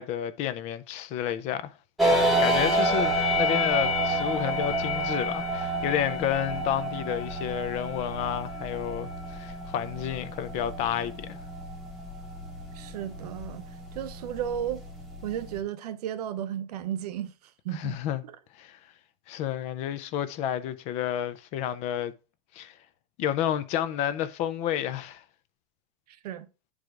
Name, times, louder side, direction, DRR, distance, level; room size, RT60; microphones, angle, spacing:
voice 1, 0.0-1.7 2.1-11.4 17.7-18.2 18.6-18.8 19.3-22.1 22.5-22.7 23.2-25.2, left 10 dB, 35° left, 0.4 m, -30 dB
sound 1, 2.0-15.6, equal, ahead, 1.0 m, -29 dB
voice 2, 12.7-13.6 13.9-14.8 15.2-17.3 17.6-18.0 18.3-18.4 26.1-26.5, right 10 dB, 75° right, 0.7 m, -34 dB
10.5 x 4.8 x 2.4 m
supercardioid pair, 150°, 20 cm